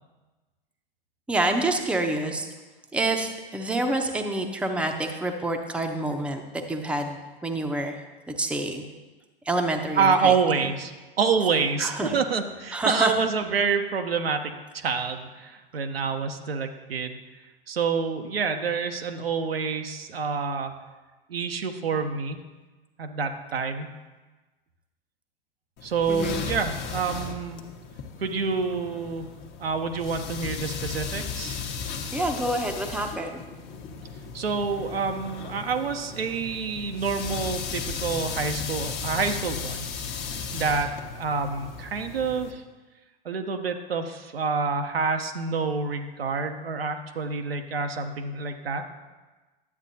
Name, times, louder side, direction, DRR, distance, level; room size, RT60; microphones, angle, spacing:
voice 1, 1.3-2.5 2.9-6.4 6.7-7.2 7.4-8.0 8.3-8.8 9.5-10.3 11.8-12.1 12.7-13.1 26.1-26.4 32.1-33.4, right 2 dB, 5° right, 4 dB, 0.7 m, -27 dB
voice 2, 10.0-10.9 11.2-17.2 17.7-20.7 21.3-22.4 23.0-23.9 25.8-27.6 28.2-29.3 29.6-31.6 34.3-40.2 40.5-42.6 43.2-48.8, right 5 dB, 85° right, 5 dB, 0.8 m, -27 dB
sound 1, 25.8-42.5, left 6 dB, 35° left, 1.0 m, -36 dB
11.0 x 8.0 x 2.7 m, 1.2 s
hypercardioid pair, 100°, 29 cm